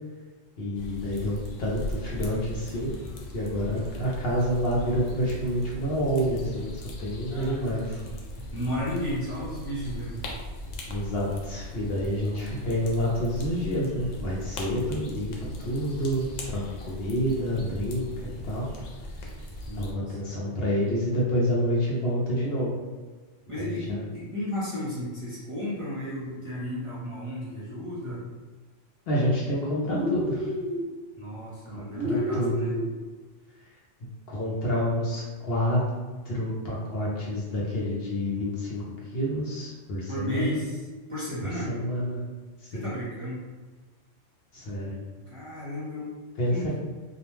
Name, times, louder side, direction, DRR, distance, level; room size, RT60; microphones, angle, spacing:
voice 1, 0.6-2.9 3.3-8.0 10.9-18.7 19.8-22.8 23.6-24.0 29.1-30.5 31.7-32.7 34.3-35.8 36.3-38.8 39.1-40.6 41.7-42.2 42.6-42.9 44.5-44.9 46.4-46.7, equal, 60° left, -5 dB, 0.8 m, -28 dB
sound 1, 0.8-19.9, left 1 dB, 85° left, 0.9 m, -39 dB
voice 2, 7.2-10.2 12.0-12.6 19.6-20.2 23.5-28.4 31.2-32.8 40.1-41.7 42.7-43.5 45.3-46.1 46.5-46.7, left 1 dB, 35° right, -9 dB, 0.6 m, -34 dB
sound 2, 29.9-30.8 31.9-32.9, equal, 55° right, 0.9 m, -29 dB
2.4 x 2.1 x 3.0 m, 1.3 s
omnidirectional pair, 1.2 m